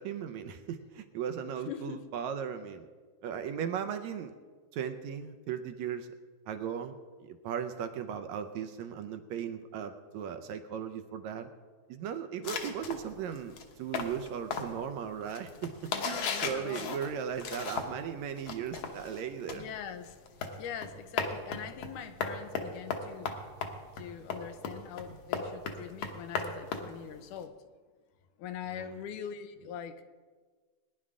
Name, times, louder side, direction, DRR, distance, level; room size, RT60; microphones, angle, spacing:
voice 1, 0.0-2.9 3.2-4.3 4.7-6.1 6.5-6.9 7.2-11.5 11.9-19.7 28.8-28.9, right 8 dB, 75° right, 8 dB, 1.8 m, -37 dB
voice 2, 1.7-2.1 12.5-12.8 15.9-17.0 19.5-20.2 20.6-23.3 24.0-27.6 28.4-30.0, left 8 dB, 85° left, 10 dB, 2.3 m, -43 dB
sound 1, 12.4-18.1 18.4-27.4, left 5 dB, 60° left, 1.9 m, -37 dB
20.5 x 10.5 x 3.7 m, 1.4 s
omnidirectional pair, 3.6 m